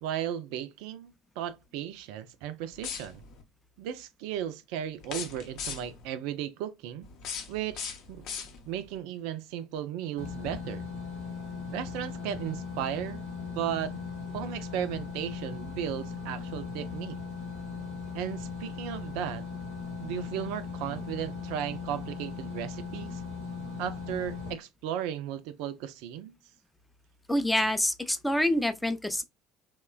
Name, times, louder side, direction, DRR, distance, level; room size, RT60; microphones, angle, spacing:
voice 1, 0.0-3.2 3.8-7.1 7.5-8.3 8.7-10.9 11.7-13.2 13.5-14.0 14.3-17.2 18.1-19.4 20.0-23.2 23.8-26.3, right 10 dB, 60° right, 0.3 m, -35 dB
sound 1, 2.7-3.4 5.0-6.1 7.0-8.9, left 6 dB, 55° left, 0.6 m, -39 dB
sound 2, 10.2-24.5, left 5 dB, 85° left, 1.0 m, -38 dB
voice 2, 27.3-29.2, left 1 dB, 5° left, 0.4 m, -26 dB
2.9 x 2.1 x 2.2 m
figure-of-eight pair, 65°, 0 cm